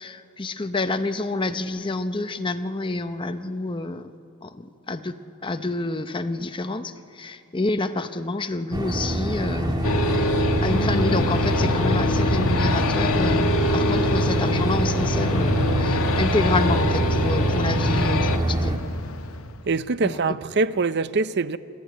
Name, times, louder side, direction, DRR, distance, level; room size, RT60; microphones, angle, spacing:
voice 1, 0.0-4.1 4.4-5.2 5.4-10.3 10.6-18.8 20.0-20.2, left 2 dB, 25° left, 0.7 m, -28 dB
sound 1, 8.7-18.8, right 1 dB, 20° right, 1.5 m, -26 dB
sound 2, 9.8-18.4, left 1 dB, 90° left, 1.5 m, -24 dB
Aircraft, 10.7-19.7, left 3 dB, 70° left, 0.8 m, -32 dB
voice 2, 19.7-21.6, right 4 dB, 50° right, 0.6 m, -23 dB
28.5 x 11.5 x 9.3 m
head